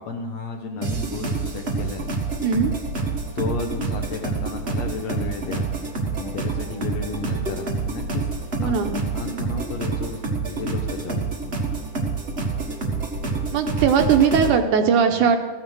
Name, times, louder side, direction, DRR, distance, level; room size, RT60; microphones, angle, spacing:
voice 1, 0.0-2.1 3.4-5.7 6.2-8.3 8.6-8.9 9.1-11.2, left 4 dB, 65° left, 3 dB, 1.8 m, -33 dB
sound 1, 0.8-14.5, right 4 dB, 45° right, 0.7 m, -27 dB
voice 2, 8.6-8.9 13.5-15.4, right 6 dB, 75° right, 5 dB, 2.1 m, -19 dB
15.0 x 8.9 x 6.2 m, 1.2 s
omnidirectional pair, 4.0 m